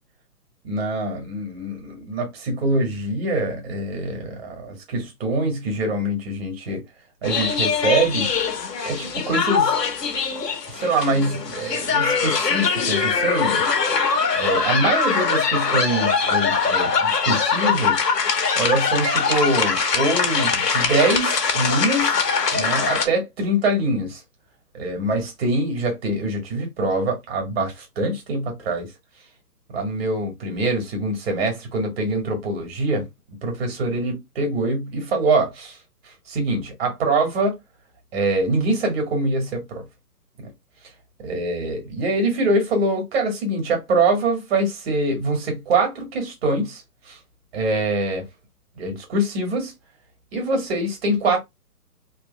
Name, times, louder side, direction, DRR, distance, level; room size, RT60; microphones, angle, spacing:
voice 1, 0.6-6.8 7.2-8.3 8.8-9.7 10.7-13.6 14.3-18.0 18.5-22.2 22.5-24.2 24.7-28.9 29.7-33.1 33.4-35.8 36.3-37.5 38.1-39.8 40.4-40.5 41.2-47.2 47.5-48.2 48.7-49.7 50.3-51.4, right 2 dB, 40° right, 1.6 m, -24 dB
sound 1, 7.2-23.1, left 5 dB, 80° left, 1.2 m, -22 dB
3.4 x 2.5 x 3.2 m
hypercardioid pair, 145°, 48 cm